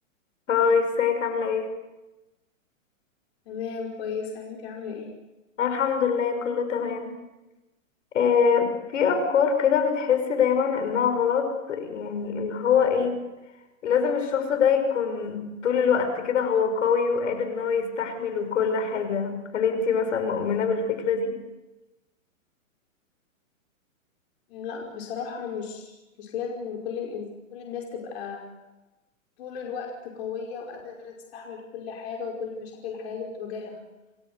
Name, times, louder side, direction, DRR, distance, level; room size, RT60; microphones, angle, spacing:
voice 1, 0.5-1.7 5.6-7.1 8.1-13.2 13.8-21.3, left 6 dB, 65° left, 8 dB, 6.2 m, -24 dB
voice 2, 3.5-5.1 24.5-27.2 27.5-28.4 29.4-33.8, left 6 dB, 50° left, 0 dB, 5.3 m, -35 dB
29.5 x 21.0 x 8.0 m, 1.1 s
hypercardioid pair, 145°, 40 cm